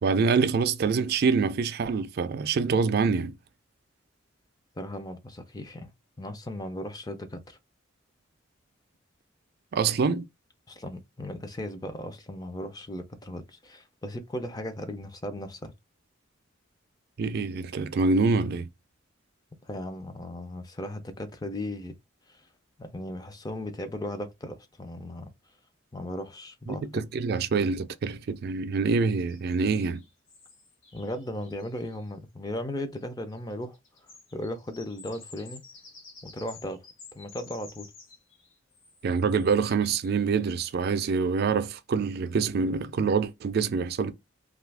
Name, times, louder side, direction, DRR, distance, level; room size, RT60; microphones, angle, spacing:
voice 1, 0.0-3.3 9.7-10.3 17.2-18.7 26.7-30.0 39.0-44.1, right 5 dB, 50° right, 0.4 m, -25 dB
voice 2, 4.8-5.9 6.2-7.6 10.7-15.7 19.6-22.0 22.3-22.4 22.8-25.3 25.9-27.0 30.9-33.8 34.3-35.6 36.2-36.8 37.1-37.9, left 1 dB, 20° left, 0.5 m, -36 dB
sound 1, 29.2-32.1 33.0-33.1 33.3-40.5 42.3-42.4 42.8-43.0, left 4 dB, 80° left, 1.1 m, -52 dB
2.6 x 2.4 x 3.3 m
head